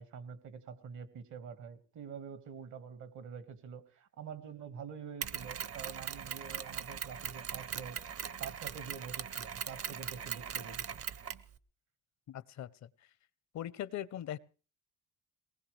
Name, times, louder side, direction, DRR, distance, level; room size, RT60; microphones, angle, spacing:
voice 1, 0.0-8.0 8.4-11.0, right 6 dB, 75° right, 11 dB, 1.8 m, -46 dB
Mechanisms, 5.2-11.5, right 8 dB, 50° right, 0.8 m, -40 dB
voice 2, 12.3-13.1 13.5-14.4, left 11 dB, 65° left, 18 dB, 0.7 m, -41 dB
22.0 x 19.5 x 3.3 m, 0.37 s
cardioid pair, 90°, 30 cm